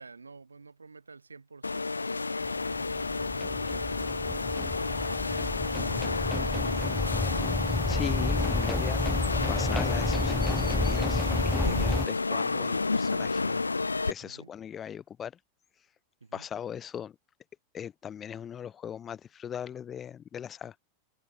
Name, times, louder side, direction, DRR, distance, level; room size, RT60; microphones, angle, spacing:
voice 1, 0.0-4.9 14.2-14.5 16.2-16.5, right 4 dB, 75° right, 2.8 m, -52 dB
sound 1, 1.6-14.1, left 3 dB, 80° left, 0.6 m, -30 dB
sound 2, 2.4-12.1, left 2 dB, 5° left, 0.3 m, -31 dB
voice 2, 7.9-13.6 14.1-15.3 16.3-17.1 17.7-20.7, left 9 dB, 25° left, 1.1 m, -39 dB
figure-of-eight pair, 90°, 0 cm